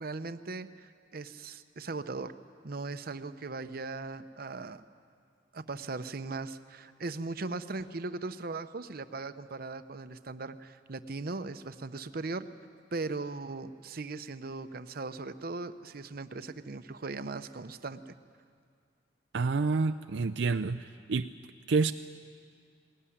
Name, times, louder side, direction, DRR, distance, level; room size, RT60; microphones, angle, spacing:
voice 1, 0.0-2.3 2.6-4.8 5.5-12.5 12.9-18.1, right 3 dB, 55° right, 11 dB, 0.8 m, -38 dB
voice 2, 19.3-20.8 21.1-21.3 21.7-21.9, right 4 dB, 80° right, 9 dB, 0.5 m, -27 dB
20.0 x 18.0 x 9.9 m, 2.1 s
head